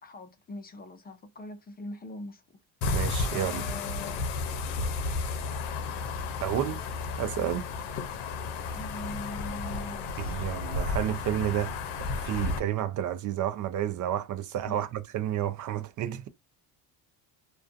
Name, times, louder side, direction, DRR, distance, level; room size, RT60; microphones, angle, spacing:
voice 1, 0.0-2.6 3.3-4.2 8.7-10.5 14.7-14.9, left 1 dB, 25° left, 0.4 m, -42 dB
sound 1, 2.8-12.6, left 3 dB, 85° left, 0.6 m, -32 dB
voice 2, 2.9-3.6 6.4-6.8 7.2-7.7 10.2-11.8 12.2-16.3, right 11 dB, 50° right, 0.4 m, -30 dB
2.4 x 2.3 x 2.4 m
cardioid pair, 105°, 40 cm